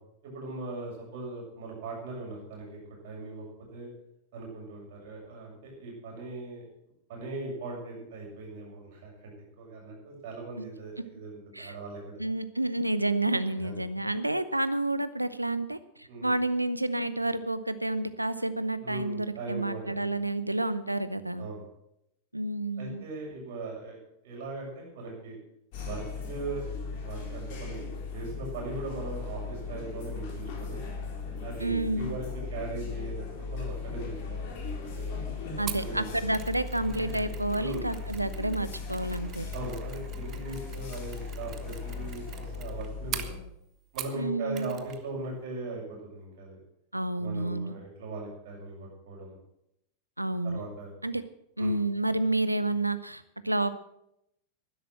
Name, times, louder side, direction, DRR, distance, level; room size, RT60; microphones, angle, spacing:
voice 1, 0.2-2.8 3.0-3.4 3.7-3.9 4.3-6.7 7.1-12.2 13.5-13.8 16.1-16.3 18.8-20.2 21.4-21.6 22.8-24.0 24.2-25.4 25.8-26.7 27.0-27.8 28.1-30.8 31.4-35.1 35.5-36.0 37.6-37.8 39.5-43.4 43.9-46.6 47.2-49.4 50.4-50.9 51.6-51.7, right 2 dB, 50° right, -1 dB, 7.1 m, -39 dB
voice 2, 12.2-21.5 22.3-23.0 31.6-32.1 35.6-39.5 44.1-44.8 46.9-47.7 50.2-50.6 51.0-51.2 51.6-53.7, right 2 dB, 85° right, 14 dB, 0.8 m, -30 dB
sound 1, 25.7-43.3, left 5 dB, 45° left, 3.6 m, -37 dB
Mechanisms, 35.7-44.3 44.5-45.0 45.3-45.4, right 11 dB, 35° right, 1.2 m, -43 dB
12.0 x 11.0 x 7.7 m, 0.80 s
figure-of-eight pair, 90°, 0 cm